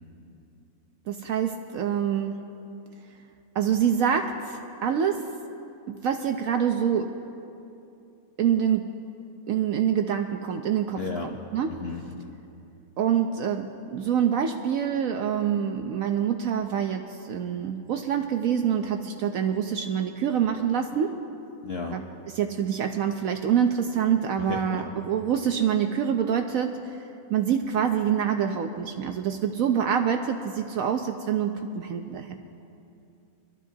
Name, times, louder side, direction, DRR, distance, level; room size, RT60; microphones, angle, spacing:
voice 1, 1.1-2.4 3.5-5.3 5.9-7.1 8.4-8.9 9.5-11.0 11.5-11.7 13.0-21.2 21.9-22.0 22.3-27.0 27.3-32.4, right 8 dB, 70° right, 5 dB, 1.0 m, -26 dB
voice 2, 11.0-11.3 11.7-12.4 21.6-22.0 24.4-25.0, left 4 dB, 50° left, 0 dB, 0.9 m, -34 dB
24.0 x 12.5 x 2.7 m, 2.8 s
omnidirectional pair, 1.6 m